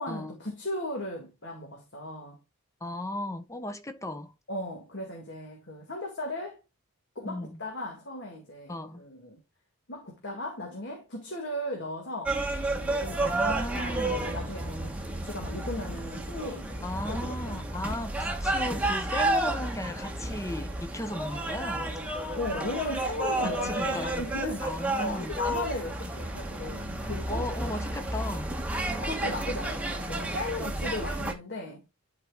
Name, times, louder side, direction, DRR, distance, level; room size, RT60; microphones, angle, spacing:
voice 1, 0.0-2.4 4.5-6.6 7.2-9.4 9.9-12.4 12.8-17.6 22.4-24.7 25.0-27.4 29.0-31.8, left 1 dB, 55° left, 2.0 m, -36 dB
voice 2, 2.8-4.3 7.2-7.6 8.7-9.0 13.2-14.3 16.8-21.9 23.4-24.3 24.6-25.4 27.3-28.6, left 1 dB, 15° left, 0.8 m, -36 dB
sound 1, 12.3-31.3, right 1 dB, 5° right, 1.0 m, -31 dB
11.5 x 4.5 x 2.3 m
head